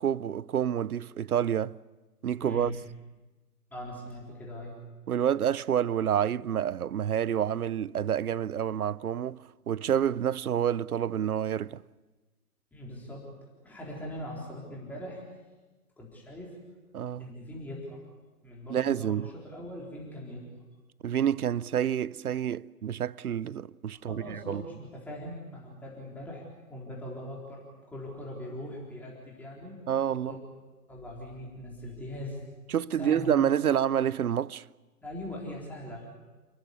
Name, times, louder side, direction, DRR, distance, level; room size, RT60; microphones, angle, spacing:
voice 1, 0.0-1.8 2.2-2.7 5.1-11.8 16.9-17.3 18.7-19.3 21.0-24.6 29.9-30.4 32.7-34.6, right 9 dB, 70° right, 0.7 m, -28 dB
voice 2, 2.4-2.8 3.7-4.8 12.7-13.3 13.6-15.2 16.0-16.6 17.2-18.0 18.4-20.4 23.9-26.4 26.7-29.8 30.2-30.4 30.9-32.4 33.0-33.3 35.0-36.1, left 1 dB, 5° left, 3.9 m, -41 dB
28.5 x 14.5 x 9.7 m
figure-of-eight pair, 140°, 46 cm